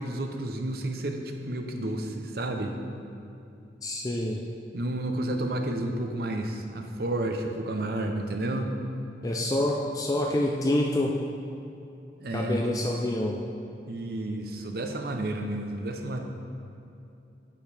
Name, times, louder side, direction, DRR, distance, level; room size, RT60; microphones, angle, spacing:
voice 1, 0.0-2.8 4.7-8.7 12.2-12.7 13.9-16.2, right 1 dB, 55° right, 4 dB, 0.6 m, -31 dB
voice 2, 3.8-4.4 9.2-11.2 12.3-13.4, left 1 dB, 20° left, 0 dB, 0.3 m, -27 dB
8.5 x 6.4 x 3.3 m, 2.7 s
head